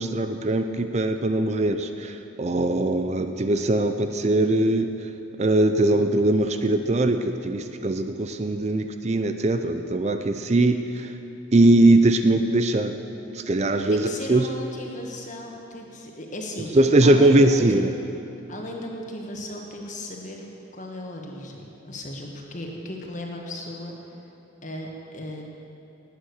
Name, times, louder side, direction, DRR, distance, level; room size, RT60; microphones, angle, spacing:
voice 1, 0.0-4.9 5.4-11.1 11.5-13.0 13.3-14.5 16.7-17.9, right 2 dB, 35° right, 8 dB, 0.5 m, -21 dB
voice 2, 13.9-17.9 18.5-23.9 24.6-25.4, left 1 dB, 40° left, 0 dB, 1.8 m, -36 dB
18.0 x 9.1 x 6.5 m, 2.9 s
head